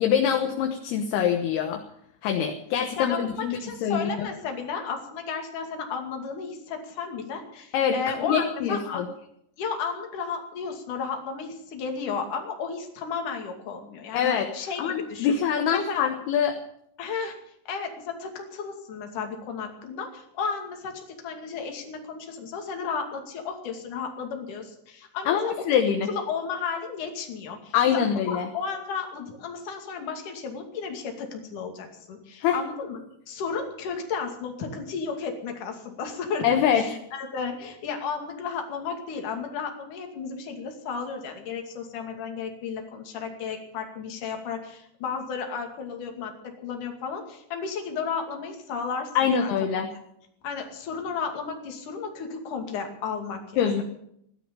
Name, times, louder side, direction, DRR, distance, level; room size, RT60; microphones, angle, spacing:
voice 1, 0.0-1.8 2.2-4.3 7.7-9.1 14.1-14.5 14.8-16.6 25.3-26.1 27.7-28.5 32.4-32.6 36.4-36.8 49.1-49.9 53.6-53.8, left 8 dB, 70° left, 4 dB, 2.9 m, -24 dB
voice 2, 3.0-9.0 9.6-14.8 15.1-15.4 15.7-16.1 17.0-17.4 17.7-25.7 26.1-27.7 28.3-33.0 33.3-49.7 50.4-53.8, left 5 dB, 50° left, 3 dB, 3.5 m, -33 dB
17.5 x 12.0 x 6.9 m, 0.72 s
omnidirectional pair, 5.2 m